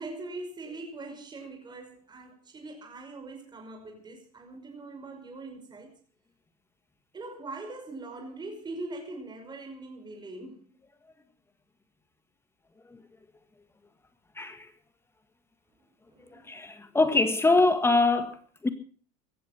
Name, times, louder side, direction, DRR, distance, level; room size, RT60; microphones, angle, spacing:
voice 1, 0.0-5.9 7.1-10.8 15.8-16.5, right 2 dB, 20° right, 5.6 m, -42 dB
voice 2, 14.4-14.7 16.3-18.7, left 3 dB, 15° left, 1.8 m, -24 dB
16.5 x 14.0 x 5.9 m
hypercardioid pair, 100°, 19 cm